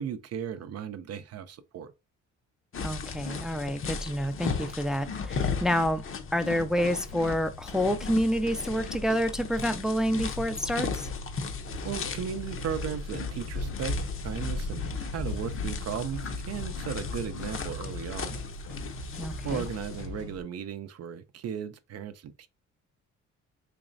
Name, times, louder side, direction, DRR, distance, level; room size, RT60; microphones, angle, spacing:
voice 1, 0.0-1.9 11.8-14.0 14.2-18.4 19.4-22.5, right 8 dB, 55° right, 0.5 m, -36 dB
sound 1, 2.7-20.1, left 4 dB, 45° left, 0.7 m, -36 dB
voice 2, 2.8-6.0 6.3-11.1 19.2-19.6, equal, ahead, 0.4 m, -28 dB
sound 2, 10.1-20.4, left 2 dB, 75° left, 0.9 m, -42 dB
sound 3, 11.7-20.2, equal, 90° left, 1.5 m, -45 dB
4.1 x 3.0 x 2.5 m
cardioid pair, 90°, 30 cm